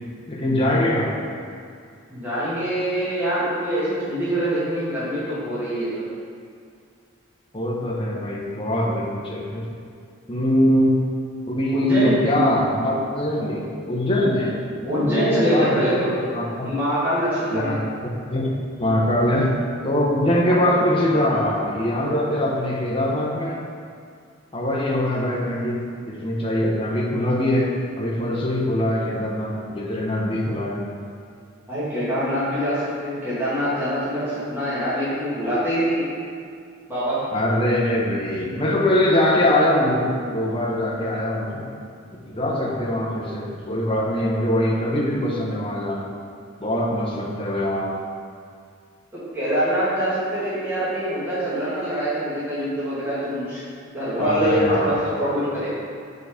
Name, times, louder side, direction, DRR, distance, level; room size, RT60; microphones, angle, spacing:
voice 1, 0.3-1.2 7.5-9.6 10.3-11.0 11.5-16.7 17.5-19.6 19.8-23.6 24.5-30.8 37.3-41.6 42.2-46.1 46.6-47.9 54.2-54.9, left 1 dB, 25° left, -3 dB, 1.0 m, -22 dB
voice 2, 2.1-6.1 11.7-12.1 14.8-16.1 16.6-17.8 31.7-36.1 36.9-37.2 49.1-53.6 53.9-55.7, equal, 10° right, -12 dB, 1.8 m, -24 dB
7.5 x 4.0 x 4.9 m, 2.3 s
head